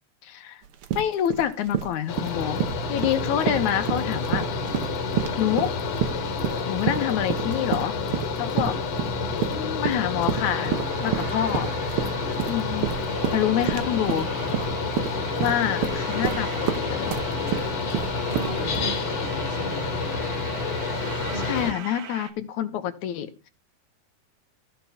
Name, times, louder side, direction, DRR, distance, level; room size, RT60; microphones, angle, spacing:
voice 1, 0.2-0.6 0.9-2.6 2.9-4.5 5.4-5.7 6.7-7.9 8.4-8.7 9.5-11.7 12.5-12.9 13.3-14.3 15.4-16.5 16.7-17.2 21.3-23.5, left 10 dB, 80° left, 9 dB, 2.4 m, -27 dB
sound 1, 0.6-18.8, right 10 dB, 65° right, 1.4 m, -29 dB
Mechanical fan, 2.1-21.7, left 4 dB, 65° left, 2.4 m, -29 dB
sound 2, 10.3-22.3, right 7 dB, 85° right, 2.9 m, -40 dB
voice 2, 18.2-20.0 21.3-21.6, right 4 dB, 20° right, -1 dB, 1.7 m, -38 dB
14.5 x 5.1 x 5.7 m, 0.30 s
omnidirectional pair, 3.3 m